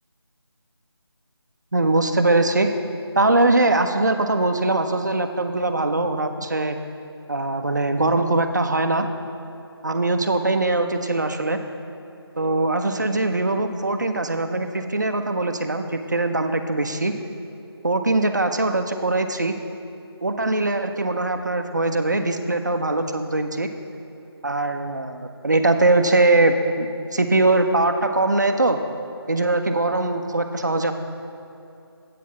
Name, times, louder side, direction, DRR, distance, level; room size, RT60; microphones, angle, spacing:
voice 1, 1.7-2.7 3.2-6.8 7.3-9.1 9.8-11.6 12.4-17.1 17.8-19.5 20.2-23.7 24.4-26.9 27.1-28.8 29.3-30.9, right 2 dB, 45° right, 6 dB, 0.5 m, -21 dB
8.3 x 4.5 x 7.2 m, 2.7 s
figure-of-eight pair, 175°, 14 cm